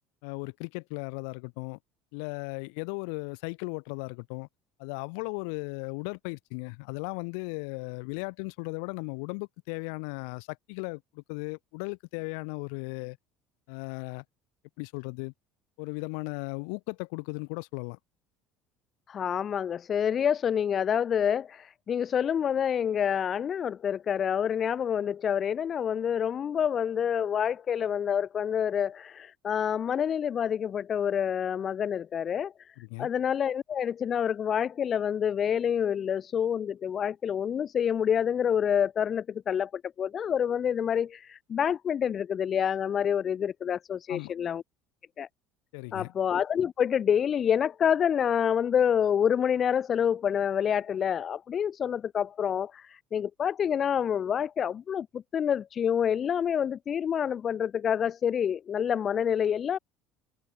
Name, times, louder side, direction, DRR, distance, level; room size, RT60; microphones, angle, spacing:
voice 1, 0.2-1.8 2.1-4.5 4.8-13.2 13.7-14.2 14.8-15.3 15.8-18.0 32.8-33.1 44.1-44.3 45.7-46.1, left 39 dB, 80° left, 2.3 m, -36 dB
voice 2, 19.1-32.5 33.0-44.6 45.2-45.3 45.9-59.8, left 8 dB, 25° left, 0.4 m, -27 dB
cardioid pair, 165°, 0 cm